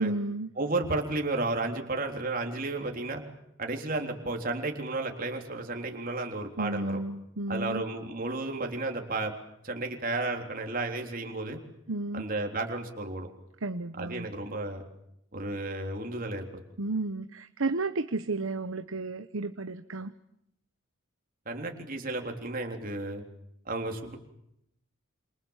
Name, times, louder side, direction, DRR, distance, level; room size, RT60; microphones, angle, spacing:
voice 1, 0.0-0.5 6.6-7.8 11.9-12.3 13.6-14.3 16.8-20.1, right 2 dB, 90° right, 10 dB, 1.0 m, -32 dB
voice 2, 0.6-3.2 3.6-7.0 7.5-9.3 9.6-11.6 12.1-13.3 14.0-14.8 15.3-16.5 21.5-23.2 23.7-24.2, right 2 dB, 45° right, 3 dB, 3.6 m, -33 dB
28.0 x 27.0 x 7.4 m, 0.79 s
head